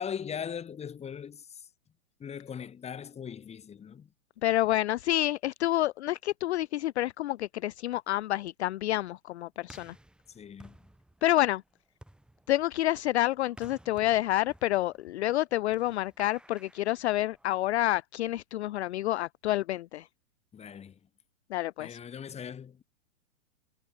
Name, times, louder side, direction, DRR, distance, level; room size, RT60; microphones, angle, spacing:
voice 1, 0.0-1.5 2.2-4.1 10.3-10.8 20.5-20.9 21.8-22.8, left 7 dB, 15° left, 2.6 m, -39 dB
voice 2, 4.4-9.9 11.2-11.6 12.5-20.1 21.5-22.0, left 15 dB, 55° left, 0.5 m, -28 dB
sound 1, 9.6-17.7, right 1 dB, ahead, 5.7 m, -56 dB
hypercardioid pair, 115°, 39 cm